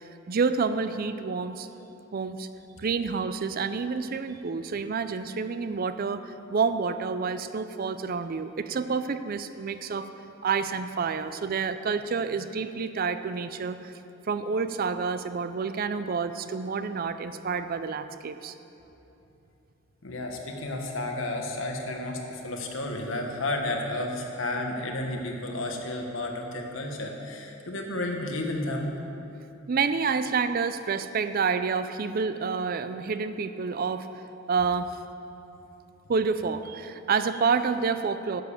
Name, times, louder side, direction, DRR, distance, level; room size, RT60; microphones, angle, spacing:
voice 1, 0.0-1.7 2.1-2.5 2.8-10.1 10.4-13.9 14.3-18.5 29.7-34.9 36.1-38.4, right 5 dB, 45° right, 11 dB, 0.4 m, -28 dB
voice 2, 20.0-28.9, left 1 dB, 70° left, 2 dB, 1.4 m, -32 dB
10.5 x 7.3 x 6.9 m, 3.0 s
head